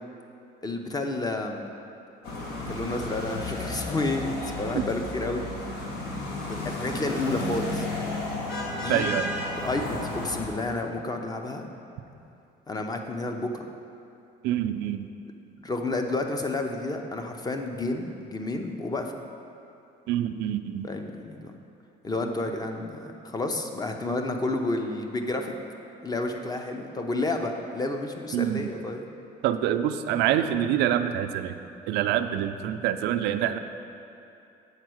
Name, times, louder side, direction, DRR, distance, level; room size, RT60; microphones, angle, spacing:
voice 1, 0.6-1.6 2.7-5.4 6.5-7.9 8.7-9.3 9.6-11.7 12.7-13.7 15.6-19.1 20.8-21.6 22.0-25.5 26.0-29.1, left 2 dB, 20° left, 4 dB, 0.6 m, -30 dB
sound 1, 2.2-10.5, left 2 dB, 75° left, 1.3 m, -33 dB
voice 2, 8.9-9.5 14.4-15.1 20.1-20.9 28.3-28.7 29.4-31.5 31.9-33.6, right 11 dB, 85° right, 9 dB, 0.4 m, -26 dB
8.1 x 4.3 x 6.3 m, 2.7 s
cardioid pair, 110°, 17 cm